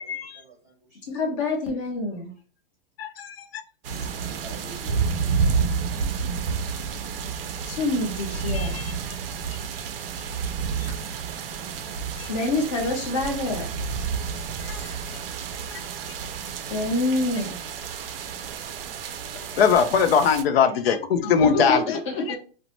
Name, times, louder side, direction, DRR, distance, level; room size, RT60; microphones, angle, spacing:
voice 1, 0.0-1.2 4.1-6.8 8.3-8.4 9.0-9.1, right 1 dB, 10° right, 0.4 m, -48 dB
voice 2, 1.1-2.3 7.7-8.7 12.3-13.9 16.7-17.6 21.2-22.4, left 2 dB, 30° left, 0.7 m, -27 dB
voice 3, 3.0-3.6 8.5-8.9 12.2-12.3 14.6-15.0 15.7-15.8 19.5-22.0 22.3-22.4, left 6 dB, 75° left, 0.5 m, -22 dB
sound 1, 3.8-20.4, right 5 dB, 70° right, 0.5 m, -30 dB
2.6 x 2.1 x 2.9 m
hypercardioid pair, 170°, 30 cm